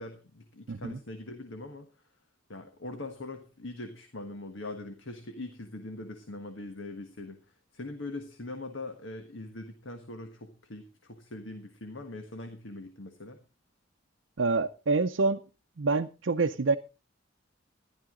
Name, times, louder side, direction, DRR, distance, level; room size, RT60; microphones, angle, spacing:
voice 1, 0.0-1.9 2.5-7.4 7.7-13.4, left 2 dB, 75° left, 1.5 m, -42 dB
voice 2, 0.7-1.0 14.4-15.4 15.8-16.8, right 3 dB, 70° right, 0.6 m, -27 dB
14.0 x 11.5 x 3.8 m
head